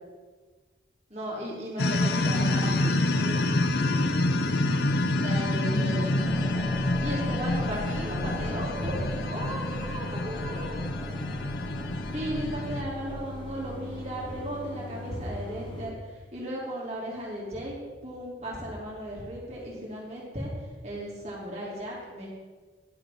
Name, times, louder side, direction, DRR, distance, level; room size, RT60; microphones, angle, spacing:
voice 1, 1.1-3.7 5.2-6.1 7.0-9.0 9.3-10.8 12.1-17.7 18.0-20.5 20.8-22.3, right 1 dB, 40° right, -5 dB, 2.9 m, -36 dB
sound 1, 1.8-12.8, left 2 dB, 70° left, 0.7 m, -27 dB
sound 2, 2.2-15.9, left 2 dB, 30° left, 1.2 m, -40 dB
sound 3, 5.6-14.7, equal, 20° right, 2.3 m, -41 dB
11.0 x 6.4 x 5.9 m, 1.4 s
head